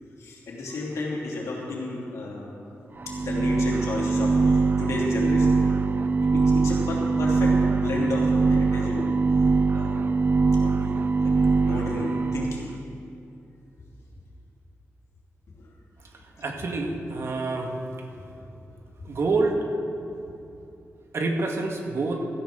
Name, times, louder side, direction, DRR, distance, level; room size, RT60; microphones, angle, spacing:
voice 1, 0.2-2.6 3.1-5.7 6.2-9.2 9.7-10.1 10.5-12.7 15.6-15.7, left 2 dB, 85° left, -4 dB, 3.1 m, -33 dB
sound 1, 3.0-12.7, right 4 dB, 40° right, 0.4 m, -22 dB
voice 2, 16.4-17.7 19.0-19.6 21.1-22.2, right 3 dB, 60° right, 2 dB, 1.7 m, -27 dB
17.0 x 14.0 x 3.8 m, 2.7 s
cardioid pair, 90°, 5 cm